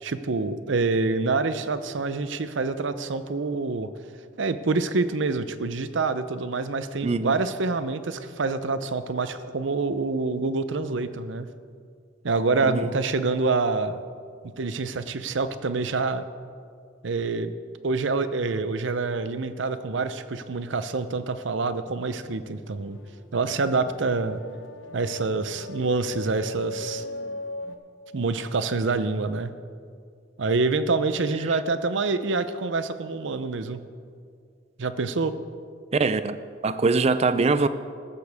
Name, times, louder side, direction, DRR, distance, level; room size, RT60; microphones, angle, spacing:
voice 1, 0.0-3.9 4.4-11.5 12.2-14.0 14.4-16.3 17.0-17.5 17.8-23.0 23.3-24.4 24.9-27.0 28.1-29.5 30.4-33.8 34.8-35.3, right 3 dB, 70° right, 12 dB, 0.6 m, -26 dB
voice 2, 7.0-7.4 12.6-12.9 35.9-36.4 36.6-37.7, right 3 dB, 35° right, 13 dB, 0.4 m, -22 dB
sound 1, 21.9-27.7, left 2 dB, 75° left, 0.9 m, -39 dB
14.5 x 13.5 x 3.5 m, 2.2 s
head